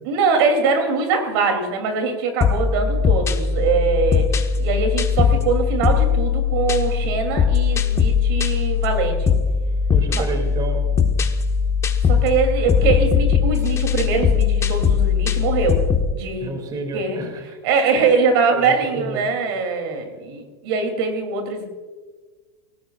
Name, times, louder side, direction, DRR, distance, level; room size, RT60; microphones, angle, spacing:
voice 1, 0.0-9.3 10.1-10.2 12.1-15.8 16.1-16.5 16.9-17.3 17.6-21.7, right 4 dB, 60° right, 5 dB, 3.1 m, -22 dB
sound 1, 2.4-16.1, left 6 dB, 20° left, 1.0 m, -20 dB
voice 2, 9.9-11.0 16.4-17.6 18.5-19.2, right 3 dB, 30° right, 4 dB, 2.6 m, -30 dB
18.5 x 17.5 x 2.5 m, 1.4 s
hypercardioid pair, 115°, 14 cm